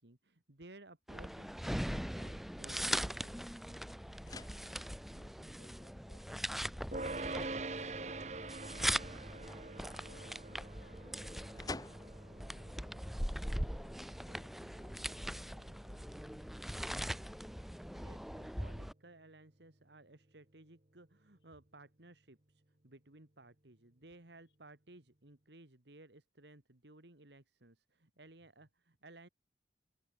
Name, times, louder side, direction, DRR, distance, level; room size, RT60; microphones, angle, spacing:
voice 1, 0.0-3.9 17.9-29.3, right 2 dB, 75° right, 2.3 m, -58 dB
sound 1, 1.1-18.9, equal, ahead, 0.8 m, -41 dB
sound 2, 6.9-18.2, right 3 dB, 40° right, 1.6 m, -46 dB
voice 2, 10.0-13.8 14.2-16.5, left 1 dB, 80° left, 7.7 m, -67 dB
sound 3, 10.1-14.4, left 2 dB, 20° left, 2.3 m, -55 dB
head